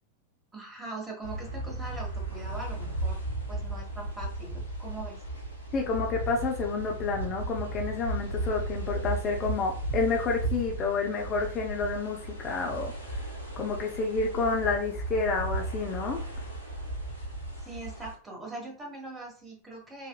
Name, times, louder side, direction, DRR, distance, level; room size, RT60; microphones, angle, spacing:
voice 1, 0.5-3.2 3.5-5.2 17.6-20.1, right 2 dB, 15° right, 0 dB, 1.3 m, -41 dB
sound 1, 1.2-18.1, right 1 dB, 85° right, 1.1 m, -35 dB
voice 2, 5.7-12.2 12.4-12.9 13.6-16.3, left 4 dB, 30° left, 2 dB, 0.5 m, -29 dB
4.2 x 2.5 x 2.3 m, 0.40 s
figure-of-eight pair, 90°, 0 cm